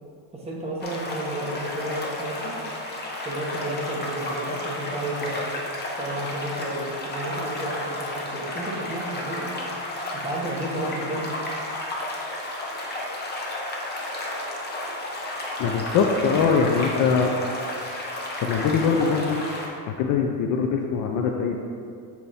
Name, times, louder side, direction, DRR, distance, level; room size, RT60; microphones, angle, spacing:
voice 1, 0.3-2.6 3.2-5.4 6.0-9.5 10.1-11.3, right 1 dB, 15° right, -4 dB, 1.0 m, -32 dB
sound 1, 0.8-19.7, left 1 dB, 20° left, 0.8 m, -32 dB
voice 2, 15.6-17.3 17.7-18.0 18.4-19.4 19.9-21.6, left 5 dB, 45° left, 2 dB, 0.5 m, -22 dB
7.0 x 4.4 x 4.1 m, 2.3 s
cardioid pair, 155°, 45 cm